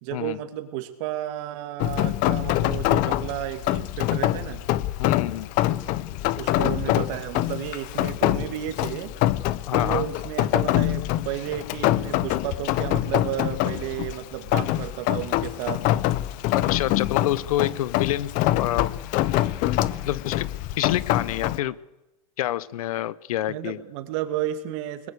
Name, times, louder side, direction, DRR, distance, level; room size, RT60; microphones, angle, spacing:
voice 1, 0.0-4.6 6.4-9.1 9.7-15.9 23.5-25.1, right 12 dB, 55° right, 9 dB, 2.5 m, -32 dB
Rain, 1.8-21.6, left 15 dB, 45° left, 1.0 m, -25 dB
voice 2, 5.0-5.5 9.7-10.1 16.5-18.9 20.0-21.8 22.4-23.8, left 13 dB, 80° left, 21 dB, 0.9 m, -27 dB
23.0 x 21.0 x 6.7 m, 0.93 s
supercardioid pair, 130°, 18 cm